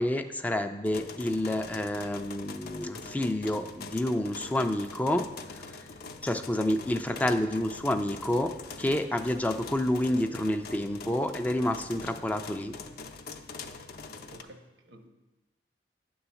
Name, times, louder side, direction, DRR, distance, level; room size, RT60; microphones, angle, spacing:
voice 1, 0.0-5.3 6.2-8.5 8.8-12.7, left 1 dB, 10° left, 7 dB, 0.3 m, -29 dB
sound 1, 0.8-14.4, left 4 dB, 55° left, 0.5 m, -44 dB
voice 2, 14.3-15.1, right 1 dB, 85° right, 5 dB, 1.0 m, -51 dB
9.5 x 3.9 x 7.0 m, 1.1 s
head